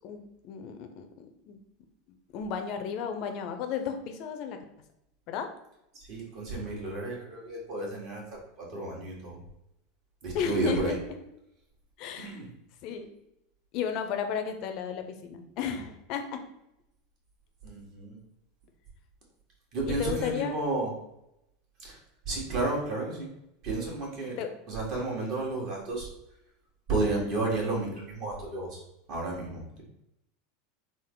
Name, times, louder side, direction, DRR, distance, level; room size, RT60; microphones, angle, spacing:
voice 1, 0.0-1.6 2.3-4.6 5.3-5.5 10.3-11.0 12.0-12.4 12.8-13.1 13.7-16.4 19.9-20.6 24.4-24.5, left 7 dB, 55° left, 6 dB, 0.5 m, -33 dB
voice 2, 6.1-9.4 10.2-10.9 12.2-12.5 17.6-18.2 19.7-20.9 21.8-22.0 22.3-23.3 23.6-24.4 24.7-26.1 26.9-28.8 29.1-29.6, right 2 dB, 50° right, -3 dB, 1.5 m, -32 dB
3.6 x 2.0 x 3.7 m, 0.84 s
hypercardioid pair, 95°, 0 cm